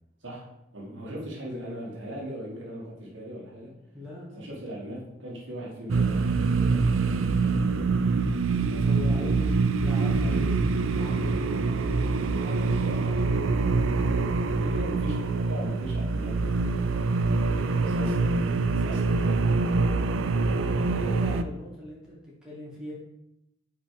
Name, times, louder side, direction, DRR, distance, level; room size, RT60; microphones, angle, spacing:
voice 1, 0.7-3.7 4.4-8.0 8.7-9.3 10.1-10.5 12.6-13.3 14.8-16.8 17.4-19.9, right 1 dB, 70° right, -3 dB, 1.8 m, -40 dB
voice 2, 3.9-4.4 8.6-10.6 10.9-13.0 14.5-15.0 20.3-22.9, left 2 dB, 5° right, -7 dB, 2.1 m, -41 dB
sound 1, 5.9-21.4, right 3 dB, 85° right, 0.4 m, -25 dB
5.7 x 4.3 x 4.9 m, 0.87 s
head